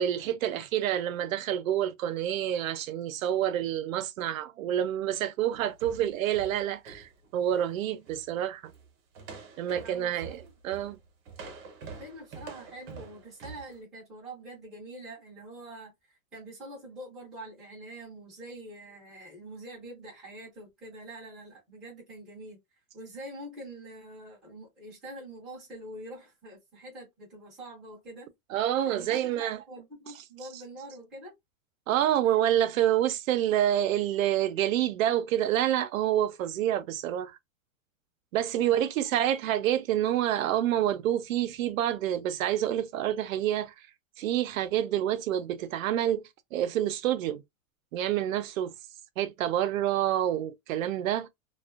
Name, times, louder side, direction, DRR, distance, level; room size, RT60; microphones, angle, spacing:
voice 1, 0.0-8.7 9.6-11.0 28.5-29.6 31.9-37.4 38.3-43.7 44.2-47.4 47.9-48.7 49.2-51.3, right 11 dB, 90° right, 0.6 m, -28 dB
sound 1, 5.5-7.7 8.0-8.3 8.6-8.9 9.1-13.7, right 5 dB, 50° right, 0.8 m, -46 dB
voice 2, 9.8-10.3 12.0-22.6 22.9-28.3 28.8-31.3 32.2-32.4 38.6-38.9, right 1 dB, ahead, 0.4 m, -45 dB
2.5 x 2.3 x 2.3 m
supercardioid pair, 175°, 40 cm